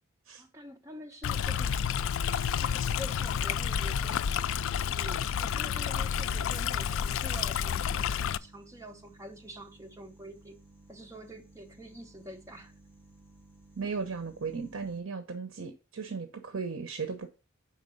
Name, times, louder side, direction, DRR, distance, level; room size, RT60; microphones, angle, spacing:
voice 1, 0.4-1.7 2.6-4.3 4.7-10.6 10.9-12.7, equal, 15° right, 1.0 m, -46 dB
Stream, 1.2-8.4, left 8 dB, 65° left, 0.3 m, -30 dB
sound 1, 4.2-15.0, right 2 dB, 10° left, 1.8 m, -57 dB
voice 2, 13.8-17.3, right 5 dB, 65° right, 0.9 m, -36 dB
5.3 x 4.5 x 5.2 m
head